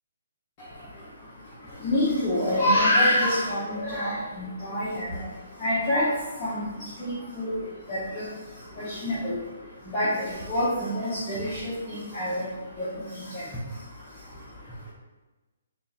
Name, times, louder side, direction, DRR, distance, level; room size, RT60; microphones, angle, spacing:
voice 1, 0.6-14.9, left 1 dB, 15° left, -11 dB, 0.7 m, -28 dB
3.4 x 2.3 x 4.0 m, 1.2 s
hypercardioid pair, 175°, 0 cm